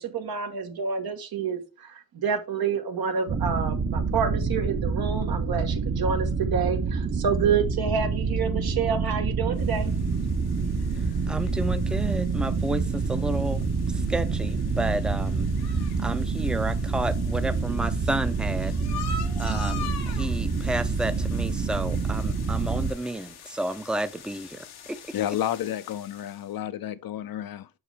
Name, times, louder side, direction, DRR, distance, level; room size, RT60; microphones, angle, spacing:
voice 1, 0.0-9.9, right 6 dB, 70° right, 1.3 m, -28 dB
sound 1, 3.3-22.9, right 4 dB, 35° right, 0.9 m, -27 dB
sound 2, 9.5-26.5, left 6 dB, 85° left, 1.0 m, -44 dB
voice 2, 11.3-15.5 16.0-18.7 19.4-25.0, right 1 dB, ahead, 0.5 m, -31 dB
voice 3, 25.1-27.7, left 11 dB, 65° left, 0.6 m, -31 dB
6.3 x 4.7 x 3.3 m
cardioid pair, 60°, 38 cm